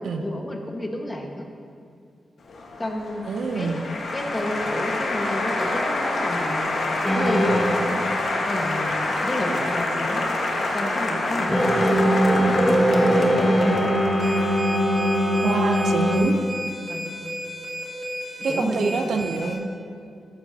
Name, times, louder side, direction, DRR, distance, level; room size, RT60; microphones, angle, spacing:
voice 1, 0.0-1.4 2.8-3.2 3.5-3.7 4.1-6.7 7.1-8.1 8.4-10.2 10.7-13.8 16.9-17.1 18.5-19.6, left 1 dB, 25° left, 1 dB, 1.6 m, -31 dB
Applause, 2.5-14.9, left 2 dB, 70° left, 1.6 m, -27 dB
voice 2, 3.3-3.8 15.1-16.4 18.4-19.7, right 4 dB, 80° right, 5 dB, 0.8 m, -26 dB
sound 1, 7.0-8.0 11.5-16.2, equal, 5° left, 2.1 m, -21 dB
sound 2, 14.2-19.5, equal, 55° right, 3.1 m, -34 dB
14.0 x 12.5 x 2.9 m, 2.3 s
cardioid pair, 75°, 0 cm